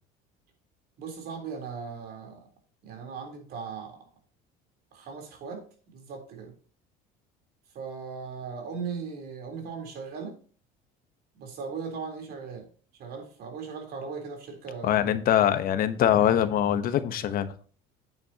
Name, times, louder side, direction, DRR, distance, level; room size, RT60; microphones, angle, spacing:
voice 1, 1.0-2.5 2.8-4.1 4.9-6.5 7.7-10.4 11.3-15.2, right 5 dB, 60° right, 3.7 m, -38 dB
voice 2, 14.8-17.5, left 10 dB, 50° left, 1.0 m, -23 dB
8.9 x 8.6 x 2.9 m
supercardioid pair, 105°, 18 cm